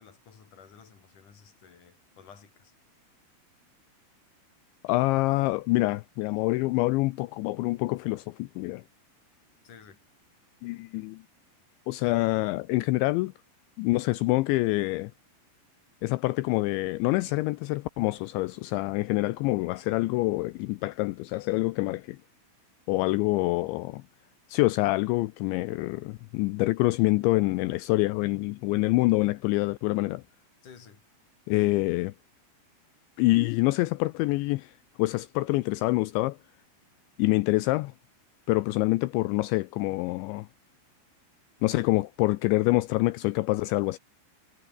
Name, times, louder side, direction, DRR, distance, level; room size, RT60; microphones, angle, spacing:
voice 1, 0.0-2.7 9.6-10.0 30.6-31.0, left 7 dB, 40° left, 5.2 m, -53 dB
voice 2, 4.8-8.8 10.6-11.2 11.9-13.3 13.8-15.1 16.0-22.2 22.9-24.0 24.5-30.2 31.5-32.1 33.2-34.7 35.0-36.4 37.2-37.9 38.5-40.5 41.6-44.0, left 20 dB, 85° left, 2.6 m, -26 dB
omnidirectional pair, 5.9 m